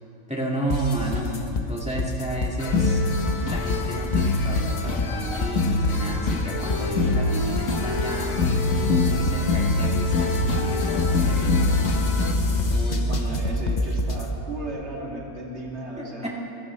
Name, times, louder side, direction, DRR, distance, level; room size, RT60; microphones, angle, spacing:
voice 1, 0.3-3.0 3.5-11.7 16.0-16.3, right 1 dB, 5° right, -3 dB, 1.8 m, -32 dB
sound 1, 0.7-14.3, left 2 dB, 35° left, 0.8 m, -27 dB
sound 2, 2.6-12.3, left 2 dB, 65° left, 1.7 m, -24 dB
voice 2, 12.7-16.3, right 1 dB, 50° right, -3 dB, 2.6 m, -35 dB
24.5 x 16.5 x 3.2 m, 2.9 s
omnidirectional pair, 1.5 m